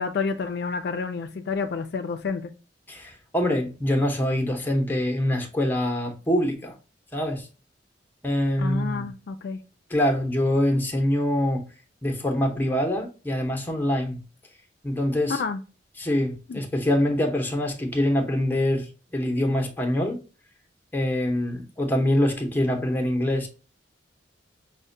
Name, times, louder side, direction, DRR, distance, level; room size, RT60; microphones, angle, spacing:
voice 1, 0.0-2.5 8.6-9.6 15.3-15.6 16.5-16.6, left 4 dB, 60° left, 0.4 m, -29 dB
voice 2, 2.9-6.7 7.1-7.4 8.2-9.1 9.9-11.7 12.0-14.2 14.8-15.4 16.0-18.9 19.1-20.2 20.9-23.5, left 1 dB, 10° left, 0.7 m, -24 dB
5.3 x 2.1 x 2.5 m
head